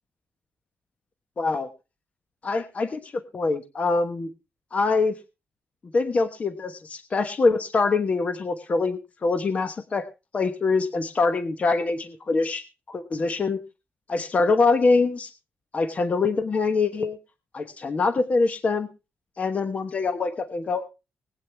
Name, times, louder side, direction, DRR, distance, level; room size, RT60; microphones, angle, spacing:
voice 1, 1.4-1.7 2.4-4.3 4.7-5.2 5.9-10.0 10.3-13.6 14.1-15.3 15.7-17.2 17.5-18.9 19.4-20.9, left 3 dB, 35° left, 9 dB, 1.1 m, -24 dB
20.5 x 8.9 x 3.4 m, 0.28 s
wide cardioid pair, 155°, 4 cm